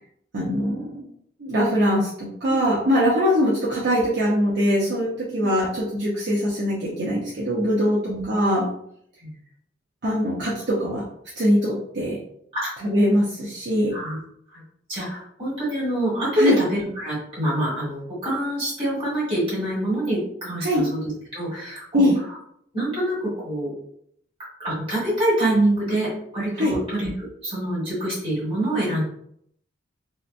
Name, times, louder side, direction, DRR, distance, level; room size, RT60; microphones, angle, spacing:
voice 1, 0.3-1.1 1.4-8.0 8.2-8.7 10.0-11.0 11.3-12.2 12.8-13.9 16.3-16.6 20.6-20.8 21.9-22.2 26.5-26.8, equal, 60° right, -6 dB, 0.5 m, -22 dB
voice 2, 14.9-21.0 21.3-22.1 22.7-23.7 24.6-29.0, right 1 dB, 30° right, -7 dB, 1.5 m, -25 dB
2.8 x 2.1 x 2.5 m, 0.69 s
head